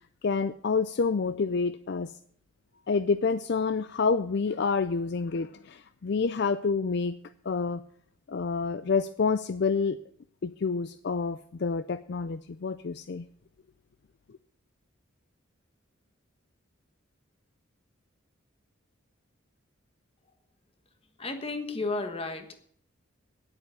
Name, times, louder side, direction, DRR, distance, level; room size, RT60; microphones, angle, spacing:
voice 1, 0.2-2.1 2.9-7.1 7.5-7.8 8.3-10.0 10.4-13.3, left 4 dB, 55° left, 13 dB, 0.4 m, -28 dB
voice 2, 21.2-22.6, left 3 dB, 30° left, 7 dB, 1.3 m, -33 dB
9.8 x 8.7 x 8.1 m, 0.63 s
head